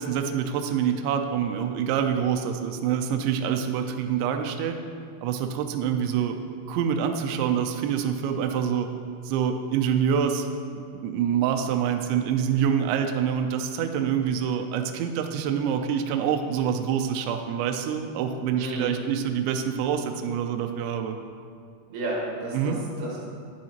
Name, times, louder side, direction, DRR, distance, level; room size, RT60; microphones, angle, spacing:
voice 1, 0.0-4.8 5.2-6.4 6.7-8.9 9.3-10.5 11.0-21.2 22.5-22.8, right 8 dB, 80° right, 5 dB, 2.7 m, -26 dB
voice 2, 18.6-18.9 21.9-23.3, right 2 dB, 65° right, -4 dB, 3.2 m, -32 dB
11.0 x 9.2 x 2.9 m, 2.2 s
omnidirectional pair, 5.7 m